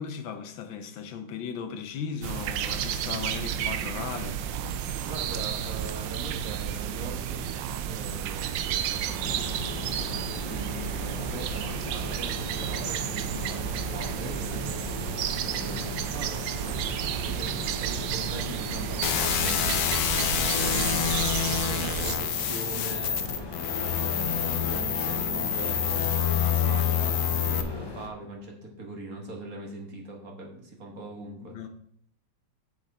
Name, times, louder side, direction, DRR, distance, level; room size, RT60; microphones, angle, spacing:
voice 1, 0.0-4.4 31.4-31.7, left 7 dB, 85° left, 1.7 m, -37 dB
sound 1, 2.2-22.2, right 9 dB, 80° right, 1.3 m, -32 dB
voice 2, 5.0-7.5 7.8-15.0 15.4-17.5 17.8-20.1 20.4-23.2 23.7-31.6, right 2 dB, 50° right, 1.9 m, -41 dB
sound 2, 9.2-28.1, left 2 dB, 25° left, 0.6 m, -39 dB
sound 3, 19.0-27.6, left 9 dB, 65° left, 1.1 m, -27 dB
7.8 x 7.3 x 4.1 m
omnidirectional pair, 2.0 m